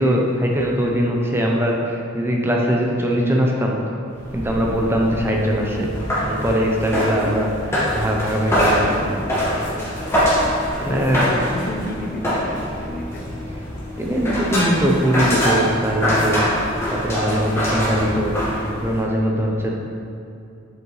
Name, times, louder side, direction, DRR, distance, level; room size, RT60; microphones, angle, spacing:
voice 1, 0.0-3.8 4.3-5.9 6.3-7.5 7.9-9.1 10.9-11.3 14.0-16.4 16.9-18.4 18.8-19.7, equal, 10° right, -1 dB, 0.6 m, -21 dB
sound 1, 4.1-19.0, equal, 15° left, 1.5 m, -24 dB
voice 2, 9.7-10.5 10.8-12.5 12.8-13.3, left 1 dB, 45° left, 2 dB, 0.5 m, -31 dB
7.8 x 4.9 x 3.1 m, 2.6 s
head